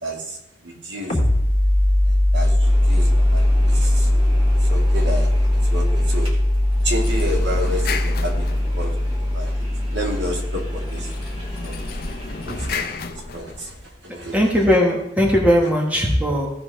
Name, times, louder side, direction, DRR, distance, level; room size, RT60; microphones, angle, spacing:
voice 1, 0.0-1.2 2.1-4.1 4.6-6.3 6.8-8.5 8.8-8.9 9.2-9.5 9.8-11.1 11.5-11.8 12.4-13.0 13.3-14.4, equal, 70° right, 0 dB, 1.9 m, -30 dB
sound 1, 1.1-12.4, left 1 dB, 35° left, 1.8 m, -20 dB
sound 2, 2.6-12.9, equal, 30° right, 2.3 m, -40 dB
sound 3, 6.7-9.2 10.9-14.0, left 4 dB, 50° left, 0.6 m, -33 dB
voice 2, 14.3-16.5, equal, 10° right, -1 dB, 1.5 m, -18 dB
16.0 x 5.9 x 3.4 m, 0.90 s
head